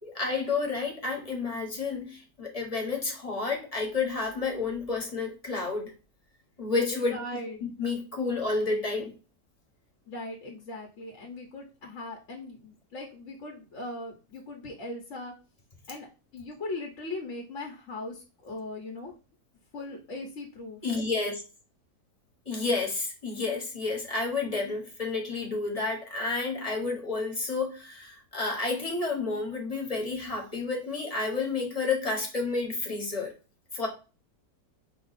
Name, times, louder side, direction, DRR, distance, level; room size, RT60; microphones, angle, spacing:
voice 1, 0.0-5.9 6.6-7.2 7.8-9.1 20.8-21.4 22.4-33.3 33.7-33.9, left 3 dB, 25° left, 0 dB, 1.2 m, -30 dB
voice 2, 6.9-7.6 10.1-15.3 15.9-16.1 16.3-19.1 19.7-20.8, left 2 dB, 50° left, 0 dB, 1.1 m, -39 dB
5.2 x 2.4 x 4.0 m, 0.33 s
omnidirectional pair, 1.8 m